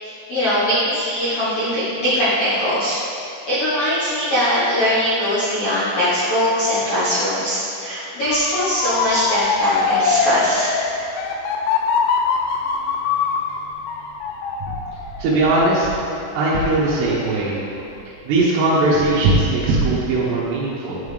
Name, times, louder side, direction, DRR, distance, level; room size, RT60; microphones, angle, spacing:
voice 1, 0.0-3.0 3.5-10.7, equal, 65° left, -12 dB, 1.5 m, -21 dB
Motor vehicle (road) / Siren, 8.2-17.2 17.6-18.0, left 5 dB, 85° left, 2.1 m, -23 dB
voice 2, 15.2-15.9 16.4-17.6 18.3-21.0, right 2 dB, 85° right, -7 dB, 3.1 m, -19 dB
9.6 x 5.5 x 3.3 m, 2.6 s
omnidirectional pair, 4.7 m